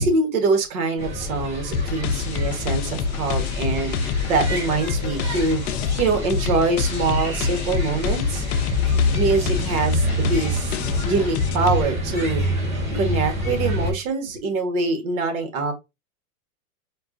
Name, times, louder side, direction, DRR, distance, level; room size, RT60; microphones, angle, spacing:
voice 1, 0.0-4.0 4.2-5.6 6.0-8.5 9.1-10.7 11.0-12.4 12.9-15.7, right 3 dB, 70° right, 1.5 m, -24 dB
sound 1, 1.0-13.9, left 1 dB, 15° right, 1.1 m, -27 dB
sound 2, 1.7-11.8, left 6 dB, 75° left, 0.6 m, -27 dB
4.4 x 2.4 x 2.6 m
supercardioid pair, 140°, 44 cm